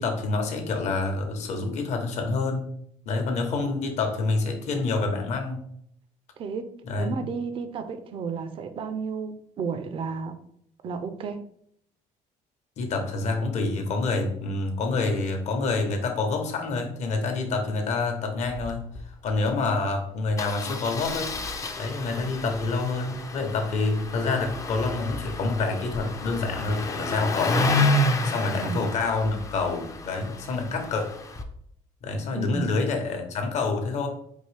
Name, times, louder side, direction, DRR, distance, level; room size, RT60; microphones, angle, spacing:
voice 1, 0.0-2.7 3.1-5.7 6.8-7.3 12.8-18.9 19.2-21.4 21.8-27.8 28.2-31.1 32.0-34.1, left 3 dB, 55° left, 4 dB, 0.9 m, -27 dB
voice 2, 6.4-6.7 7.0-10.4 10.8-11.4 28.6-28.8 32.4-32.7, right 5 dB, 40° right, 9 dB, 0.4 m, -32 dB
Engine starting, 18.4-18.7 19.0-19.1 19.3-19.5 20.4-31.4, left 2 dB, 25° left, 0.4 m, -30 dB
4.5 x 2.6 x 3.2 m, 0.68 s
cardioid pair, 125°, 14 cm